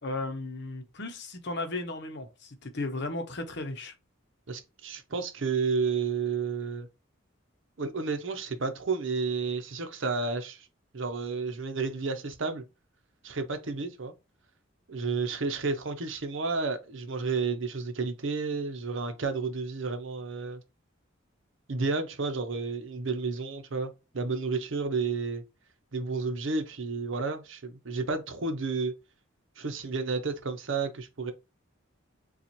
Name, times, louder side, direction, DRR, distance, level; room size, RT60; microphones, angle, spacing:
voice 1, 0.0-3.9, left 2 dB, 55° left, 0.8 m, -35 dB
voice 2, 4.5-6.9 7.8-10.7 10.9-12.6 13.2-14.1 14.9-20.6 21.7-25.4 25.9-28.9 29.6-31.3, right 4 dB, 65° right, 0.7 m, -31 dB
6.9 x 2.4 x 3.0 m
head